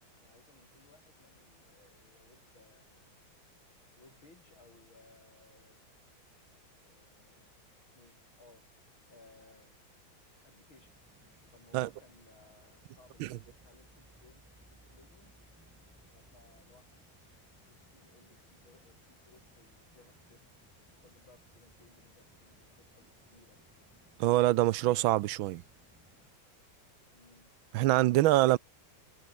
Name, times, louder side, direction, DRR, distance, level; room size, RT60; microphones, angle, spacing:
voice 1, 0.2-3.2 4.0-5.9 6.8-7.6 7.9-8.7 9.1-9.8 10.4-10.9 11.5-15.3 16.1-17.0 17.7-20.4 21.0-23.6 27.1-27.5, left 3 dB, 85° left, 7.1 m, -62 dB
sound 1, 10.8-26.3, equal, 5° right, 3.0 m, -64 dB
voice 2, 24.2-25.6 27.7-28.6, right 16 dB, 80° right, 1.4 m, -25 dB
omnidirectional pair, 2.2 m